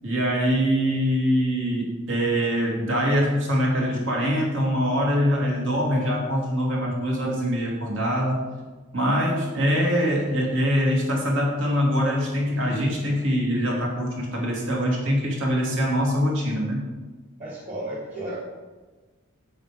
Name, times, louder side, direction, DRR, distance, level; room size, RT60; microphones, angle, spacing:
voice 1, 0.0-8.4 8.9-16.8, equal, 65° right, -2 dB, 2.9 m, -23 dB
voice 2, 17.4-18.3, right 1 dB, 40° right, -7 dB, 2.8 m, -33 dB
8.7 x 8.5 x 5.2 m, 1.3 s
head